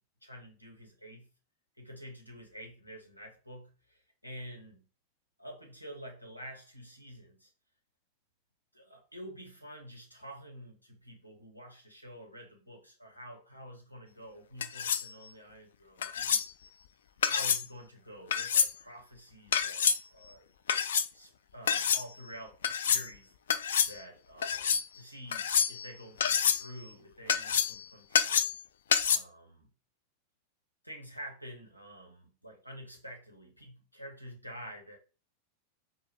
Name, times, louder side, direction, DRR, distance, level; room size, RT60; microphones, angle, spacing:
voice 1, 0.2-1.3 1.8-4.9 5.4-7.5 8.7-16.4 17.2-20.4 21.1-23.3 23.8-28.5 29.1-29.7 30.8-35.0, equal, 90° left, 1 dB, 1.0 m, -48 dB
sound 1, 14.6-15.1 16.0-16.5 17.2-17.7 18.3-18.7 19.5-20.0 20.7-21.1 21.7-22.0 22.6-23.1 23.5-23.9 24.4-24.8 25.3-25.9 26.2-26.7 27.3-27.8 28.1-28.6 28.9-29.2, left 7 dB, 60° left, 0.3 m, -27 dB
4.5 x 2.0 x 3.4 m, 0.34 s
figure-of-eight pair, 90°, 0 cm